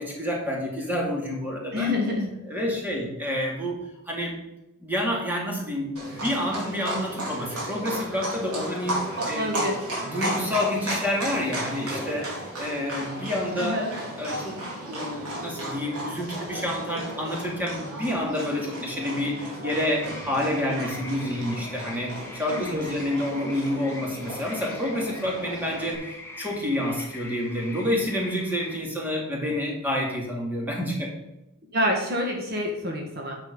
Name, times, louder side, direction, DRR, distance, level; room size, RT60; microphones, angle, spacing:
voice 1, 0.0-2.0 2.5-3.8 4.1-4.4 4.8-9.5 10.0-13.9 14.1-14.6 14.9-31.1, left 1 dB, 10° right, -2 dB, 2.3 m, -28 dB
voice 2, 1.7-2.3 9.2-9.7 13.6-13.9 22.5-22.9 31.7-33.4, left 1 dB, 45° right, 1 dB, 1.5 m, -27 dB
Livestock farm animals working animals, 6.0-26.0, right 1 dB, 85° right, 3.6 m, -34 dB
sound 1, 19.7-28.8, left 2 dB, 10° left, 1.1 m, -43 dB
9.6 x 6.7 x 5.3 m, 0.93 s
head